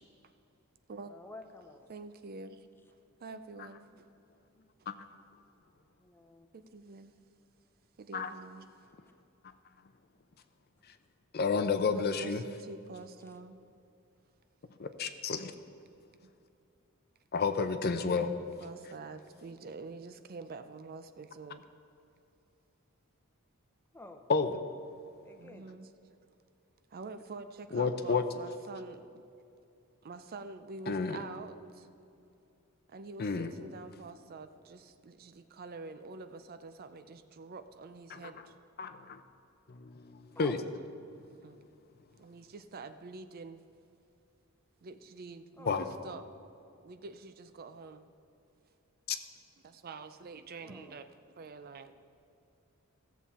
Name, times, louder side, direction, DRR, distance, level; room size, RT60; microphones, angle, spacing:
voice 1, 1.1-1.9 6.0-6.5 13.2-13.4 23.9-24.3 25.2-25.7 27.7-27.9 40.3-40.6 45.6-45.8 50.6-51.0, left 2 dB, 10° left, 6 dB, 0.7 m, -50 dB
voice 2, 1.9-4.1 6.5-7.1 8.0-8.7 11.9-13.6 16.2-16.3 18.0-21.6 25.4-25.9 26.9-29.2 30.0-31.9 32.9-38.5 41.4-41.6 42.2-43.6 44.8-46.2 46.8-48.1 49.6-51.1 51.4-51.9, right 3 dB, 45° right, 10 dB, 0.4 m, -47 dB
voice 3, 11.3-12.4 14.8-15.5 17.3-18.3 24.3-24.6 27.7-28.2 30.9-31.2 33.2-33.5 38.1-38.3 38.8-39.2 39.7-40.6 45.7-45.9 49.1-49.2, left 5 dB, 45° left, 9 dB, 0.6 m, -31 dB
15.5 x 7.3 x 4.2 m, 2.6 s
head